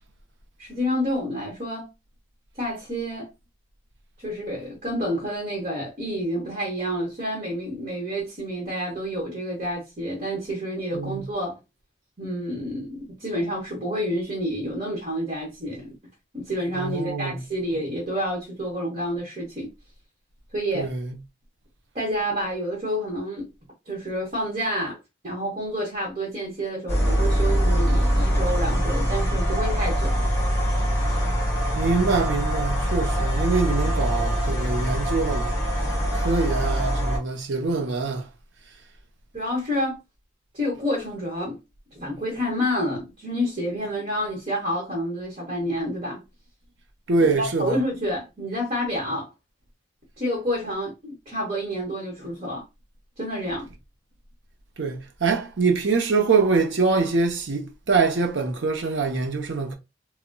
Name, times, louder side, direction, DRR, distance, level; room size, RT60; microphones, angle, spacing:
voice 1, 0.6-1.9 2.6-3.3 4.2-11.6 12.2-15.9 16.3-19.7 20.5-20.9 21.9-23.5 23.9-25.0 25.2-30.1 39.3-40.0 40.5-41.6 41.9-46.2 47.2-49.3 50.2-52.6 53.2-53.7, equal, 35° right, 1.1 m, -29 dB
voice 2, 10.9-11.3 16.7-17.4 20.7-21.2 31.8-35.6 36.1-38.3 47.1-47.8 54.8-59.8, right 4 dB, 70° right, 0.7 m, -24 dB
sound 1, 26.9-37.2, equal, 15° left, 1.7 m, -23 dB
3.8 x 2.1 x 2.2 m
head